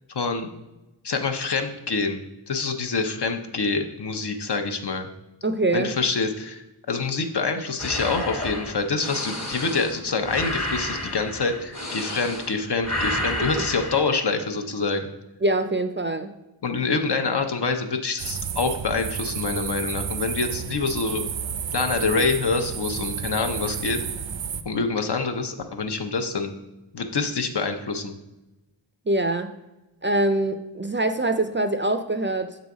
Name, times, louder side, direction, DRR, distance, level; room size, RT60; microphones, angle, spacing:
voice 1, 0.1-0.5 1.0-5.1 5.7-15.1 16.6-21.2 21.7-24.0 24.6-26.5 26.9-28.2, left 4 dB, 65° left, 6 dB, 0.7 m, -26 dB
voice 2, 5.4-5.9 15.4-16.3 29.1-29.5 30.0-32.6, right 2 dB, 30° right, 8 dB, 0.4 m, -24 dB
sound 1, 7.8-12.6 12.8-14.0, left 1 dB, 35° left, 1.1 m, -30 dB
sound 2, 18.2-24.6, right 7 dB, 80° right, 0.5 m, -31 dB
6.8 x 3.9 x 4.8 m, 1.0 s
wide cardioid pair, 75°, 44 cm